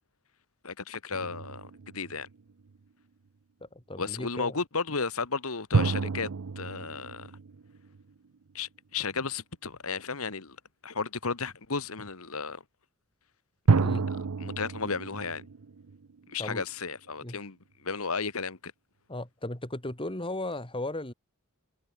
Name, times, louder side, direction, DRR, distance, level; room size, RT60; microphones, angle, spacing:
voice 1, 0.6-2.3 4.0-6.3 6.6-7.3 8.5-10.6 10.8-12.6 13.7-15.4 16.3-18.7, left 4 dB, 70° left, 1.7 m, -34 dB
sound 1, 1.1-2.8 5.7-8.4 13.7-16.7, right 4 dB, 80° right, 0.6 m, -30 dB
voice 2, 3.6-4.6 13.8-14.1 16.4-16.6 17.2-17.4 19.1-21.1, left 1 dB, 25° left, 3.2 m, -36 dB
head